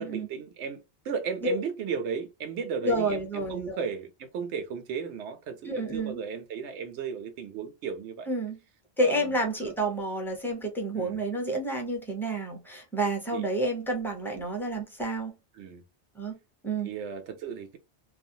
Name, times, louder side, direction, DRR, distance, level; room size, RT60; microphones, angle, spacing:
voice 1, 0.0-8.3 9.0-9.7 10.9-11.2 13.3-13.5 15.5-15.8 16.8-17.8, right 6 dB, 90° right, 0.9 m, -35 dB
voice 2, 2.8-3.8 5.6-6.2 8.3-8.6 9.0-15.3 16.2-16.4 16.6-16.9, right 1 dB, ahead, 0.6 m, -29 dB
2.5 x 2.2 x 2.6 m
omnidirectional pair, 1.2 m